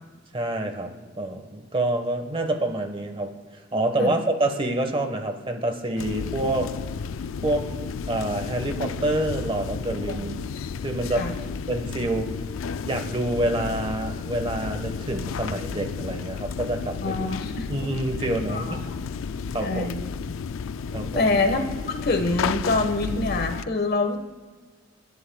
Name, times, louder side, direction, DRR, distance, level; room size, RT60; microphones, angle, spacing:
voice 1, 0.3-6.7 7.4-10.4 10.8-11.3 11.7-12.3 12.8-17.3 17.7-18.8 19.5-19.9 20.9-21.3, right 1 dB, 30° right, 5 dB, 1.3 m, -27 dB
sound 1, 6.0-23.6, left 5 dB, 90° left, 0.4 m, -32 dB
voice 2, 17.0-17.7 18.5-18.8 19.6-20.0 21.1-24.2, left 2 dB, 55° left, 5 dB, 1.4 m, -25 dB
28.0 x 11.0 x 2.3 m, 1.4 s
head